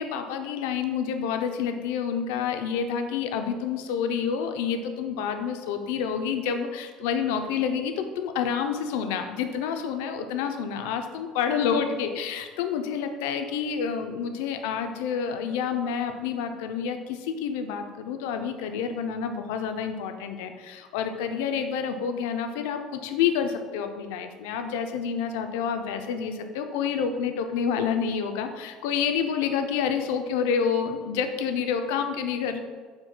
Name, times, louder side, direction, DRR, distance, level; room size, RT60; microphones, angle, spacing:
voice 1, 0.0-32.6, left 7 dB, 90° left, 6 dB, 0.3 m, -28 dB
4.4 x 2.1 x 3.9 m, 1.5 s
cardioid pair, 125°, 0 cm